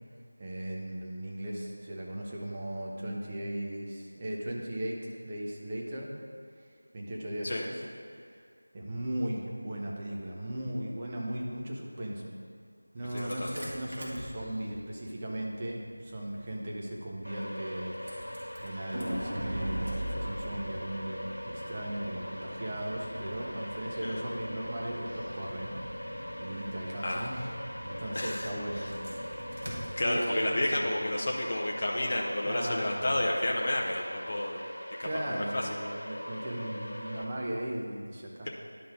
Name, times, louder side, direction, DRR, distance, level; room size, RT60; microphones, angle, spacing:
voice 1, 0.4-6.1 6.9-7.8 8.1-8.4 8.7-12.3 12.9-25.8 26.1-27.5 27.8-29.4 30.0-30.8 32.4-33.1 35.0-38.5, right 1 dB, 20° right, -3 dB, 0.8 m, -37 dB
Engine starting, 12.9-31.9, right 1 dB, 55° right, 1.8 m, -42 dB
voice 2, 13.1-13.6 24.0-24.2 27.0-27.3 28.1-28.9 30.0-34.6 35.0-35.7, left 1 dB, 35° left, -2 dB, 0.5 m, -31 dB
sound 1, 17.2-37.2, equal, 75° left, 1.1 m, -41 dB
10.5 x 3.8 x 5.1 m, 2.1 s
figure-of-eight pair, 170°, 0 cm